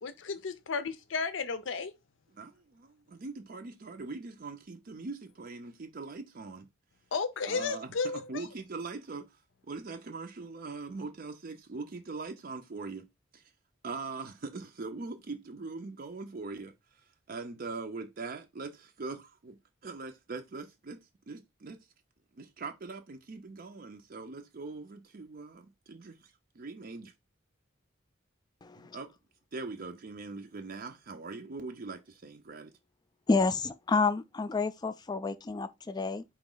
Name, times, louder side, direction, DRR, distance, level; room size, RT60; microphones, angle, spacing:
voice 1, 0.0-1.9 7.1-8.4, left 4 dB, 70° left, 0.5 m, -33 dB
voice 2, 2.3-6.7 7.5-9.3 9.7-13.1 13.3-13.4 13.8-16.7 17.3-21.8 22.4-27.1 28.8-29.1 29.5-32.7, right 3 dB, 45° right, 0.5 m, -42 dB
voice 3, 28.6-29.0 33.3-36.2, left 4 dB, 20° left, 0.3 m, -29 dB
4.4 x 3.0 x 3.8 m
head